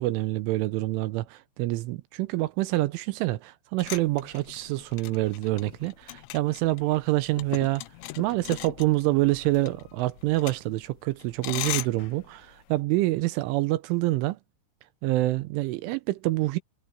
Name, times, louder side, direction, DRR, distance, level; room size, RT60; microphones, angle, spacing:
voice 1, 0.0-7.8 8.2-14.4 15.0-16.6, right 18 dB, 80° right, 3.1 m, -26 dB
sound 1, 3.8-12.8, left 18 dB, 80° left, 2.6 m, -39 dB
omnidirectional pair, 5.8 m